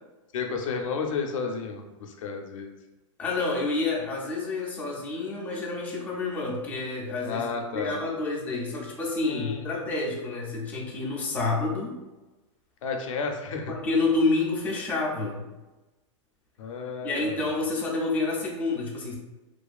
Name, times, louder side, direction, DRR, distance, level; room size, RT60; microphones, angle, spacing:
voice 1, 0.3-2.7 7.2-8.0 9.2-9.6 12.8-13.7 16.6-17.4, left 5 dB, 75° left, 3 dB, 0.5 m, -32 dB
voice 2, 3.2-7.5 7.7-12.0 13.7-15.4 17.0-19.1, left 3 dB, 10° left, -3 dB, 0.3 m, -28 dB
2.5 x 2.3 x 2.3 m, 1.1 s
supercardioid pair, 155°, 17 cm